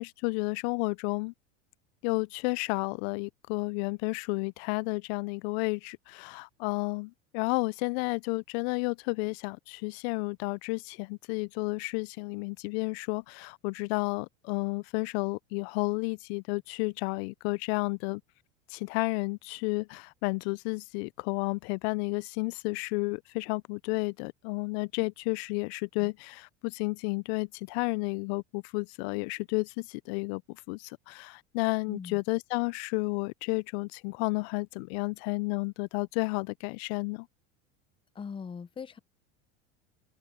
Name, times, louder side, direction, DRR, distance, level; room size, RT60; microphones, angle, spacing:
voice 1, 0.0-1.3 2.0-18.2 18.7-30.4 30.7-37.3, left 29 dB, 60° left, 0.5 m, -32 dB
voice 2, 31.9-32.2 38.2-39.0, left 6 dB, 15° left, 0.6 m, -40 dB
hypercardioid pair, 100°, 36 cm